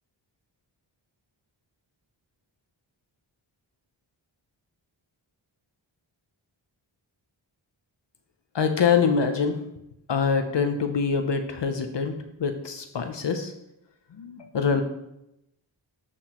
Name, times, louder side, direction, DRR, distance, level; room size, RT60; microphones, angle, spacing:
voice 1, 8.5-9.6 10.1-13.5 14.2-14.8, left 6 dB, 60° left, 7 dB, 0.7 m, -25 dB
7.7 x 6.1 x 2.9 m, 0.83 s
wide cardioid pair, 60°, 48 cm